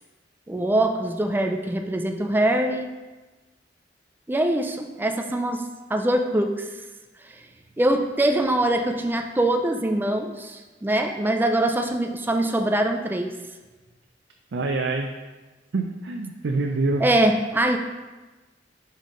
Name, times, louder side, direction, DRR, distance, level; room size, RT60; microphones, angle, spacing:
voice 1, 0.5-2.9 4.3-5.6 5.9-6.7 7.3-7.4 7.8-13.3 17.0-17.8, right 1 dB, 10° right, 4 dB, 0.3 m, -23 dB
voice 2, 14.5-15.1 15.7-17.0, right 3 dB, 70° right, 2 dB, 0.5 m, -25 dB
5.5 x 5.3 x 3.7 m, 1.2 s
head